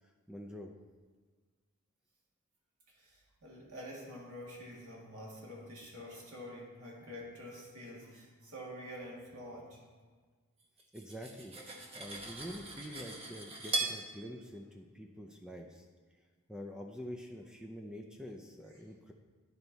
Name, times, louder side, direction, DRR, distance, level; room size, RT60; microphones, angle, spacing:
voice 1, 0.3-0.7 10.9-11.6 11.9-15.9 16.5-19.1, equal, 5° right, 2 dB, 0.4 m, -46 dB
voice 2, 3.0-9.8, equal, 85° right, -3 dB, 2.1 m, -47 dB
Cutlery silverware, 10.8-14.0, right 3 dB, 25° right, 1.0 m, -39 dB
10.5 x 4.6 x 4.0 m, 1.4 s
head